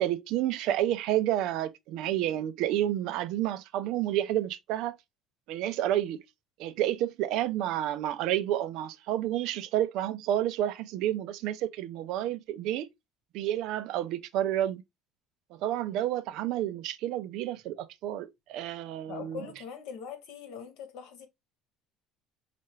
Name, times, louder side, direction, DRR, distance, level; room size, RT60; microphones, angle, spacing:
voice 1, 0.0-5.0 5.5-6.2 6.6-12.9 13.3-14.8 15.5-19.4, right 12 dB, 60° right, 0.4 m, -30 dB
voice 2, 19.1-21.3, left 7 dB, 70° left, 1.3 m, -42 dB
5.5 x 2.5 x 3.1 m
cardioid pair, 165°, 0 cm